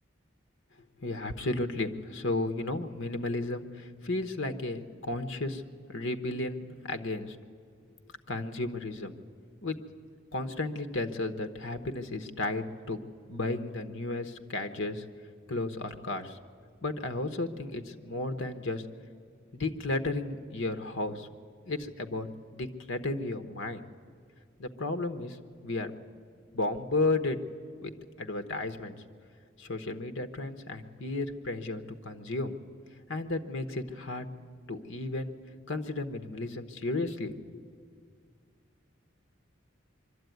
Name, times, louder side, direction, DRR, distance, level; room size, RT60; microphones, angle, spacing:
voice 1, 1.0-5.6 5.9-7.4 8.3-9.1 9.6-9.8 10.3-13.0 13.3-15.0 15.5-16.4 16.8-18.8 19.5-21.3 21.7-22.3 22.5-23.8 24.6-25.4 25.6-25.9 26.5-27.4 27.8-27.9 28.2-28.9 29.6-32.6 33.1-34.2 34.7-35.3 35.7-37.6, left 2 dB, 75° left, 8 dB, 1.1 m, -33 dB
23.5 x 12.5 x 9.3 m, 2.2 s
head